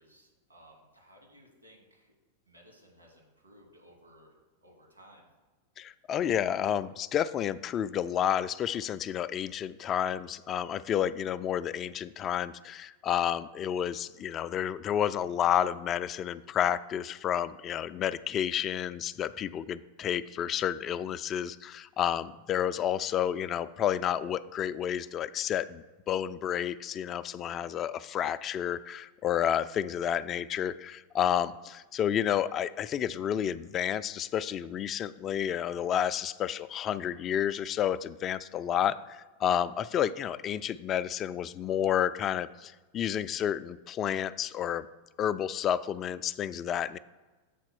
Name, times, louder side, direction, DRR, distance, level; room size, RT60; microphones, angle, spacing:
voice 1, 0.0-2.1 2.5-4.3 4.6-5.3, equal, 80° right, 0 dB, 2.0 m, -58 dB
voice 2, 5.8-44.9 45.2-47.0, left 9 dB, 30° left, 14 dB, 0.3 m, -30 dB
7.6 x 4.2 x 6.1 m, 1.2 s
figure-of-eight pair, 90°, 0 cm